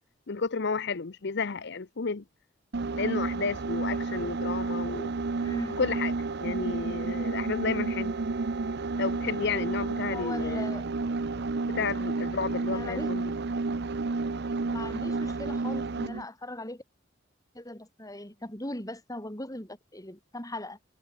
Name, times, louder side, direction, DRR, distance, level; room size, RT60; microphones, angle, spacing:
voice 1, 0.3-2.2 3.0-5.1 5.8-6.1 6.4-8.1 9.0-10.6 11.7-13.3, left 5 dB, 60° left, 0.8 m, -32 dB
sound 1, 2.7-16.3, right 3 dB, 55° right, 0.7 m, -31 dB
voice 2, 5.4-5.8 10.1-10.9 12.7-13.1 14.7-16.8 17.5-20.8, left 1 dB, 20° left, 4.6 m, -38 dB
head